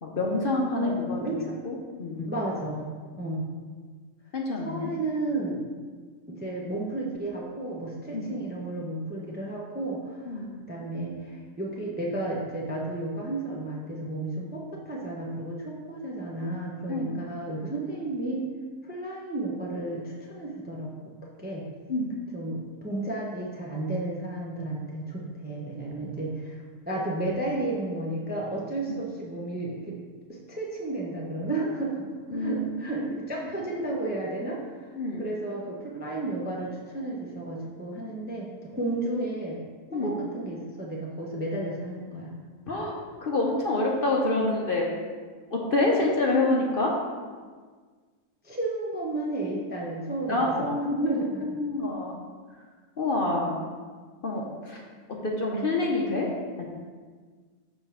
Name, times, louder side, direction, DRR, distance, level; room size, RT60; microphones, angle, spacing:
voice 1, 0.0-2.3 4.3-4.9 8.1-8.3 10.2-10.5 16.9-17.2 21.9-22.1 28.9-29.0 32.3-33.1 33.4-33.5 35.0-35.2 39.9-40.2 42.7-44.9 45.5-46.9 50.3-52.2 53.0-53.6 54.2-54.8 55.2-56.3 56.6-56.7, left 2 dB, 45° left, -1 dB, 0.8 m, -27 dB
voice 2, 0.7-1.4 2.3-3.5 4.6-5.6 6.3-18.4 18.8-20.9 21.4-21.7 22.3-26.6 26.9-30.0 30.3-34.6 35.2-39.6 39.9-42.3 48.4-51.6, right 2 dB, 10° right, -3 dB, 0.5 m, -32 dB
6.9 x 3.3 x 5.6 m, 1.5 s
omnidirectional pair, 1.5 m